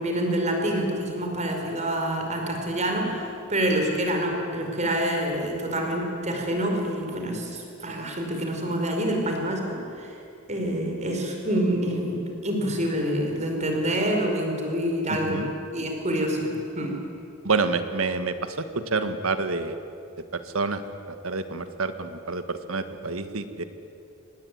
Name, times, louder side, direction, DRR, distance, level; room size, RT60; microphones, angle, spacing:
voice 1, 0.0-10.1 10.5-15.4 15.7-17.0, right 1 dB, 35° right, 2 dB, 4.9 m, -27 dB
voice 2, 17.4-18.5 18.9-19.7 20.3-20.8 21.2-23.6, right 4 dB, 80° right, 10 dB, 1.7 m, -28 dB
25.0 x 20.0 x 9.6 m, 2.6 s
head